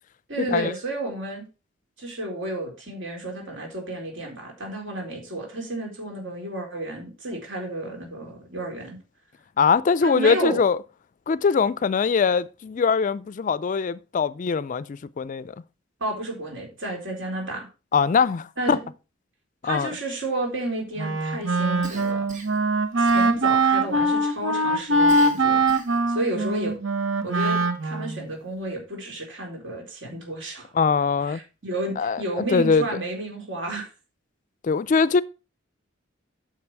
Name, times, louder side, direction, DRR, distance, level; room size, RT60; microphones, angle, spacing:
voice 1, 0.3-1.5 2.0-9.0 10.0-10.6 16.0-17.7 18.6-18.8 19.6-22.3 23.0-25.7 26.1-26.7 27.2-30.7 31.3-33.9, right 1 dB, 65° right, 3.9 m, -31 dB
voice 2, 9.6-10.8 11.3-15.5 17.9-18.8 19.6-19.9 30.7-31.4 32.0-32.8 34.6-35.2, left 5 dB, 40° left, 0.3 m, -22 dB
Wind instrument woodwind instrument, 21.0-28.3, right 2 dB, 85° right, 1.0 m, -22 dB
Cough, 21.8-22.6 23.1-23.7 25.1-26.1, right 4 dB, 40° right, 2.0 m, -42 dB
8.7 x 6.7 x 4.6 m
head